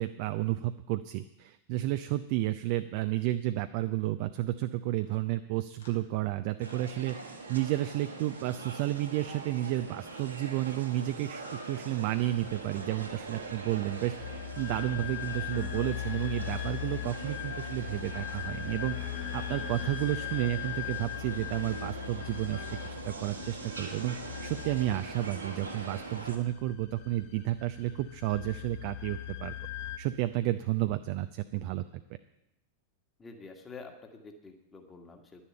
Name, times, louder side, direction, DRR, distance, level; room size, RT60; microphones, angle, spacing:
voice 1, 0.0-7.2 7.5-19.0 19.3-24.2 24.4-29.5 30.0-32.0, right 15 dB, 45° right, 10 dB, 0.5 m, -32 dB
sound 1, 5.0-5.2 5.8-6.0 6.6-7.1 7.4-7.8 8.3-8.6 9.1-9.5 9.9-10.3 10.8-11.2, left 5 dB, 70° left, 1.9 m, -58 dB
sound 2, 6.6-26.4, right 3 dB, 75° right, 1.9 m, -43 dB
sound 3, 12.2-30.0, left 12 dB, 45° left, 0.9 m, -40 dB
voice 2, 33.2-35.4, left 4 dB, 15° left, 4 dB, 1.7 m, -48 dB
10.5 x 7.1 x 8.8 m, 0.87 s
figure-of-eight pair, 90°, 0 cm